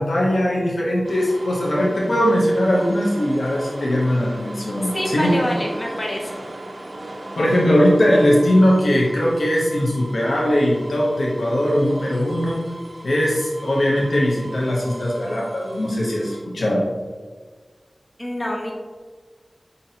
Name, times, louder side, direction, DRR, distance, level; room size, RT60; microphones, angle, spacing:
voice 1, 0.0-5.3 7.4-12.6 13.0-16.8, equal, 85° left, -3 dB, 0.6 m, -20 dB
sound 1, 1.0-16.4, right 1 dB, 55° right, 0.4 m, -38 dB
voice 2, 4.9-6.4 18.2-18.7, left 1 dB, 40° left, -2 dB, 0.9 m, -26 dB
5.6 x 2.6 x 2.7 m, 1.5 s
wide cardioid pair, 45°, 0 cm